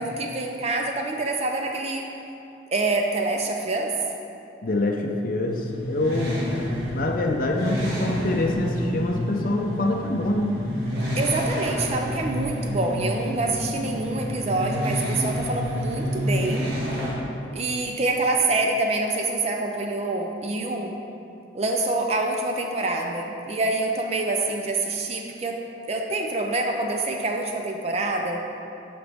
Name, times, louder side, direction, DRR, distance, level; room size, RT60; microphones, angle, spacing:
voice 1, 0.0-2.1 2.7-3.9 11.2-16.7 17.5-21.0 21.5-25.6 25.9-28.4, right 2 dB, 35° right, 2 dB, 0.5 m, -26 dB
voice 2, 4.6-6.4 6.9-10.5, left 1 dB, 50° left, 1 dB, 0.5 m, -25 dB
sound 1, 5.5-17.1, equal, 70° right, 1.7 m, -29 dB
11.0 x 5.1 x 3.5 m, 2.7 s
head